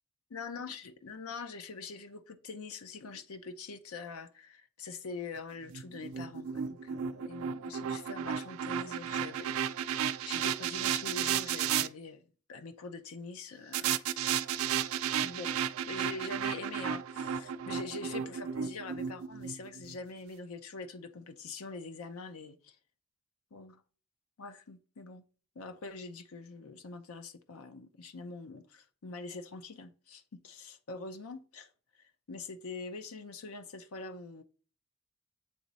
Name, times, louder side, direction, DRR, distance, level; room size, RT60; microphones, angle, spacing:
voice 1, 0.3-10.0 10.3-12.2 12.5-14.0 15.2-15.5 15.9-22.8 23.5-23.8 24.4-25.2 25.6-31.7 32.0-34.4, left 3 dB, 85° left, 0.6 m, -44 dB
sound 1, 5.7-11.9 13.7-20.0, right 8 dB, 75° right, 0.4 m, -33 dB
8.3 x 3.1 x 4.0 m
head